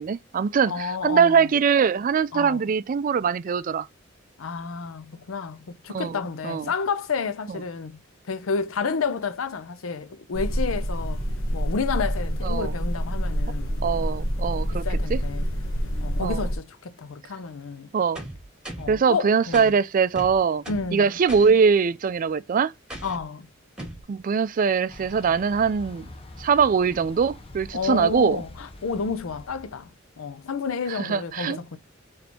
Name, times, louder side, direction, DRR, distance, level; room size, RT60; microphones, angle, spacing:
voice 1, 0.0-3.9 5.9-6.7 7.5-7.6 12.4-12.7 13.8-14.8 15.1-15.2 16.2-16.5 17.9-18.2 18.9-20.6 20.9-22.7 24.1-26.1 26.4-28.4 30.9-31.6, right 6 dB, 40° right, 0.3 m, -22 dB
voice 2, 0.7-1.5 2.3-2.6 4.4-8.0 8.3-11.2 11.5-13.8 14.7-15.5 16.0-17.9 18.8-19.7 20.7-21.1 23.0-23.5 27.7-29.9 30.2-31.8, left 5 dB, 90° left, 0.6 m, -30 dB
sound 1, 10.3-16.6, equal, 75° left, 1.1 m, -27 dB
sound 2, 18.2-19.0 19.5-19.7 20.2-20.9 21.3-21.5 22.9-23.2 23.8-24.0, right 1 dB, 5° right, 2.2 m, -37 dB
Thunder / Bicycle, 24.9-29.9, left 1 dB, 30° left, 0.7 m, -44 dB
4.2 x 3.3 x 2.8 m
head